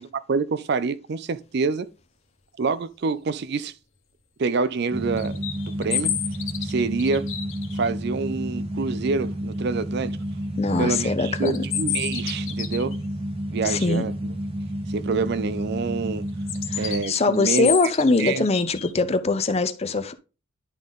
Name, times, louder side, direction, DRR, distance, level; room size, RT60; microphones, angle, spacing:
voice 1, 0.0-1.9 2.6-3.7 4.4-5.4 5.8-6.1 6.6-7.3 7.7-10.1 10.8-12.9 13.5-14.3 14.9-16.2 16.8-17.8 18.2-18.5, right 4 dB, 50° right, 0.4 m, -26 dB
sound 1, 4.9-17.0, equal, 25° right, 0.9 m, -30 dB
sound 2, 5.2-7.9 11.3-13.0 16.5-18.9, left 10 dB, 70° left, 1.3 m, -30 dB
voice 2, 10.6-11.6 13.6-14.1 16.7-20.1, left 3 dB, 30° left, 0.5 m, -22 dB
10.5 x 3.8 x 3.7 m
head